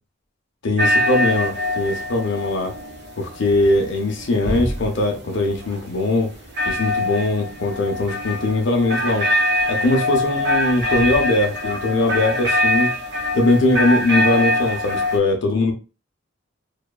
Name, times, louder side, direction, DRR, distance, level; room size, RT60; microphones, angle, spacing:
voice 1, 0.6-2.7 3.2-6.3 6.7-9.3 9.7-12.9 13.3-15.7, left 2 dB, 60° left, 3 dB, 0.5 m, -20 dB
sound 1, 0.8-15.2, left 1 dB, 55° right, 0.6 m, -23 dB
2.7 x 2.2 x 2.3 m, 0.32 s
head